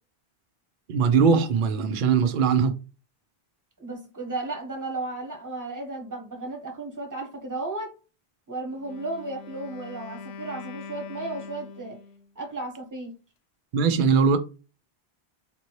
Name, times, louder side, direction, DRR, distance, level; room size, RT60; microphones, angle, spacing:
voice 1, 0.9-2.7 13.7-14.4, right 6 dB, 55° right, 0.7 m, -20 dB
voice 2, 3.8-7.9 8.5-12.0 12.3-13.1, right 2 dB, 15° right, 1.3 m, -34 dB
Wind instrument woodwind instrument, 8.8-12.3, left 5 dB, 75° left, 0.8 m, -42 dB
4.3 x 2.7 x 3.0 m
omnidirectional pair, 1.1 m